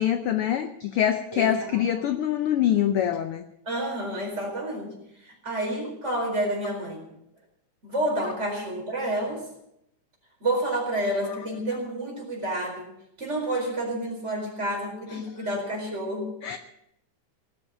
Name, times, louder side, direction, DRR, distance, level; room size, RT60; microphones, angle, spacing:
voice 1, 0.0-3.5 16.4-16.6, left 10 dB, 75° left, 9 dB, 1.3 m, -24 dB
voice 2, 1.3-1.8 3.6-7.1 7.8-9.4 10.4-16.3, right 1 dB, 20° right, 0 dB, 4.6 m, -29 dB
18.5 x 8.1 x 8.7 m, 0.79 s
omnidirectional pair, 3.4 m